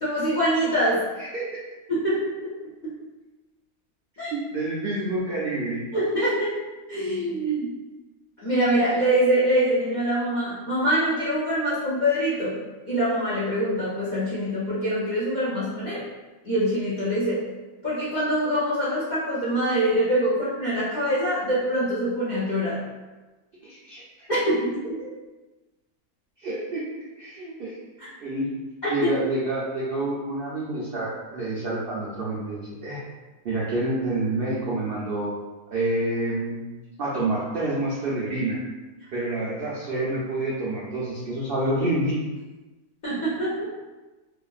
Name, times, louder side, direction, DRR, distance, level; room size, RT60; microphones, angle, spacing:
voice 1, 0.0-1.0 1.9-2.5 2.8-2.9 4.2-4.3 5.9-6.5 6.9-7.7 8.4-12.6 12.9-16.0 16.4-17.4 17.8-22.8 24.3-24.8 28.0-28.1 28.8-29.1 43.0-43.7, equal, 50° left, -10 dB, 0.5 m, -24 dB
voice 2, 1.2-1.5 4.3-5.8 23.8-24.3 26.4-26.9 27.2-27.7 28.2-28.5 28.9-33.0 33.4-35.3 35.7-36.6 37.0-38.6 39.1-42.1, right 2 dB, 80° right, -6 dB, 0.5 m, -28 dB
2.8 x 2.4 x 2.3 m, 1.2 s
omnidirectional pair, 1.6 m